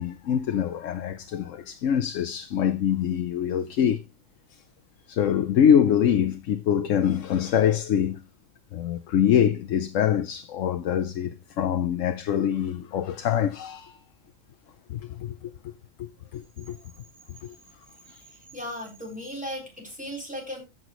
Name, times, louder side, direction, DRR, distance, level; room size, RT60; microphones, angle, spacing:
voice 1, 0.0-4.0 5.1-8.2 8.7-14.0 14.9-15.5 16.0-16.8 17.4-17.5 18.1-18.2, left 9 dB, 85° left, 1.1 m, -24 dB
voice 2, 18.3-20.6, equal, 5° right, 3.9 m, -36 dB
14.5 x 6.0 x 3.0 m
omnidirectional pair, 1.3 m